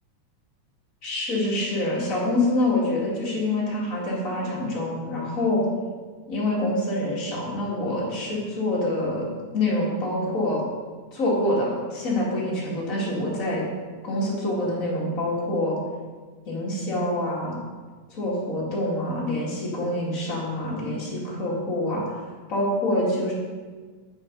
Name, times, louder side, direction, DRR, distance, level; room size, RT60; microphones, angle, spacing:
voice 1, 1.0-5.6 6.3-9.3 9.5-10.6 11.1-13.6 14.0-15.8 16.5-17.6 18.1-22.0 22.5-23.3, left 1 dB, 30° left, -5 dB, 2.1 m, -26 dB
8.8 x 5.6 x 5.3 m, 1.5 s
omnidirectional pair, 3.5 m